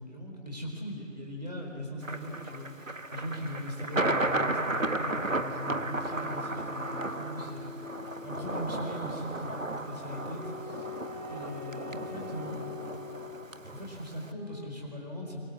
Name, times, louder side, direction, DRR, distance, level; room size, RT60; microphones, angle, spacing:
voice 1, 0.0-7.7 8.2-10.9 11.3-13.0 13.7-15.4, left 1 dB, 35° right, -1 dB, 4.4 m, -39 dB
Thunder, 2.0-14.3, right 2 dB, 80° right, 1.4 m, -34 dB
sound 1, 5.5-9.0 10.1-13.2 14.3-14.7, left 4 dB, 25° left, 3.3 m, -44 dB
29.0 x 24.0 x 7.3 m, 2.7 s
figure-of-eight pair, 175°, 39 cm